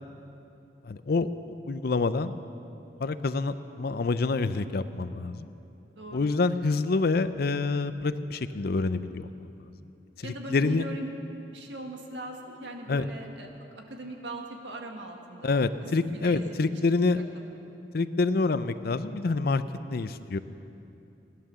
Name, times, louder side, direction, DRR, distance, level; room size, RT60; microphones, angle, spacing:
voice 1, 0.8-2.4 3.0-5.5 6.1-9.7 10.2-10.9 12.9-13.1 15.4-17.2 17.9-19.6 19.9-20.4, left 3 dB, 60° left, 13 dB, 0.5 m, -27 dB
voice 2, 5.9-6.3 10.2-11.2 11.5-16.4 16.7-17.2, right 1 dB, 85° right, 2 dB, 1.8 m, -40 dB
16.5 x 11.0 x 6.8 m, 2.8 s
head